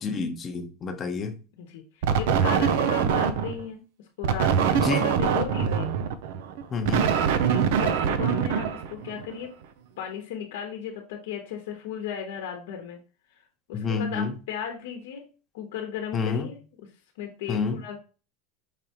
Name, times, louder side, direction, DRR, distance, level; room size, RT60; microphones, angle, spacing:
voice 1, 0.0-1.4 4.8-5.1 6.7-7.1 13.7-14.3 16.1-16.5 17.5-17.8, left 4 dB, 25° left, 0.8 m, -28 dB
sound 1, 2.0-3.6 4.2-9.4, right 7 dB, 75° right, 0.5 m, -24 dB
voice 2, 2.2-3.8 4.2-5.9 7.4-9.5 10.0-13.0 13.7-15.3 15.5-16.9 17.2-18.0, left 8 dB, 75° left, 1.0 m, -35 dB
5.3 x 3.3 x 2.9 m
supercardioid pair, 150°, 0 cm